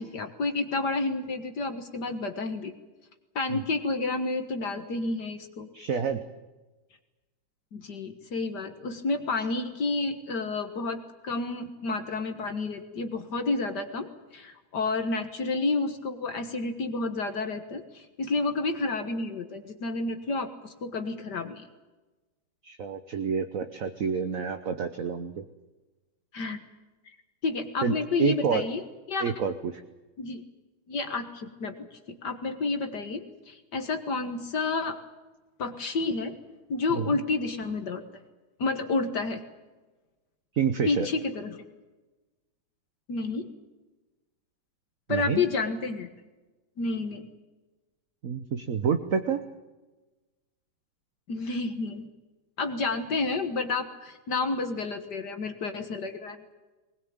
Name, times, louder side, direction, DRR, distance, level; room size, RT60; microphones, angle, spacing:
voice 1, 0.0-2.7 3.4-5.7 7.7-14.1 14.3-21.6 26.3-26.6 27.4-29.2 30.2-30.4 30.9-35.0 35.6-36.3 36.7-38.0 38.6-39.4 40.9-41.6 43.1-43.5 45.1-46.1 46.8-47.3 51.3-52.1 52.6-56.4, left 3 dB, 55° left, 7 dB, 2.0 m, -30 dB
voice 2, 5.7-6.2 22.6-25.5 27.8-28.6 29.2-29.5 36.9-37.2 40.5-41.1 45.1-45.4 48.2-49.4, right 6 dB, 50° right, 8 dB, 1.2 m, -28 dB
20.5 x 20.5 x 8.8 m, 1.2 s
omnidirectional pair, 2.2 m